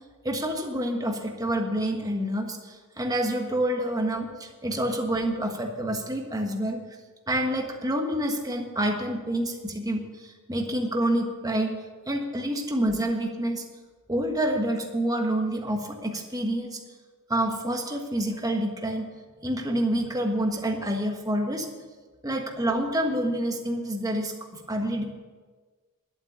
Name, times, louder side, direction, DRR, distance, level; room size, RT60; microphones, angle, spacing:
voice 1, 0.2-6.8 7.3-11.8 12.1-13.6 14.1-16.8 17.3-19.1 19.4-21.7 22.2-24.3 24.7-25.0, right 1 dB, 15° right, 3 dB, 1.4 m, -27 dB
11.5 x 7.9 x 8.8 m, 1.4 s
head